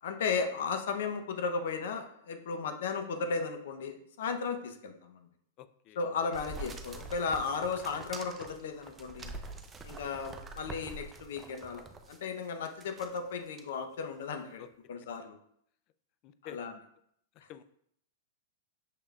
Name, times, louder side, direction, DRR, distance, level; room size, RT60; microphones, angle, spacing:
voice 1, 0.0-5.3 6.0-9.3 9.8-15.4 16.4-16.7 17.4-17.5, left 5 dB, 70° left, 6 dB, 0.7 m, -35 dB
voice 2, 5.6-6.0 7.6-7.7 14.6-14.7 16.2-16.6 17.5-17.6, left 11 dB, 40° left, 12 dB, 0.3 m, -48 dB
sound 1, 6.3-12.2 12.7-13.2 13.6-13.7, right 3 dB, 15° right, 0.5 m, -45 dB
6.6 x 3.3 x 2.4 m, 0.70 s
hypercardioid pair, 130°, 0 cm